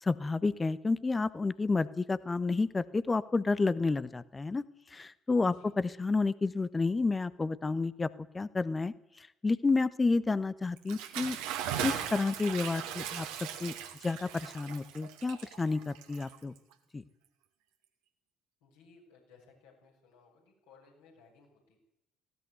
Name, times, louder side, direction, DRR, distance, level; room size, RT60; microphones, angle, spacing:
voice 1, 0.0-4.6 4.9-8.1 8.3-11.4 11.8-13.7 14.0-16.5 16.9-17.0, left 3 dB, 25° left, 16 dB, 1.1 m, -30 dB
voice 2, 5.4-5.7 18.6-21.8, left 4 dB, 70° left, -1 dB, 7.0 m, -61 dB
Bathtub (filling or washing) / Splash splatter, 10.8-16.7, right 9 dB, 65° right, 2.2 m, -38 dB
19.0 x 17.0 x 9.5 m, 0.87 s
figure-of-eight pair, 50°, 0 cm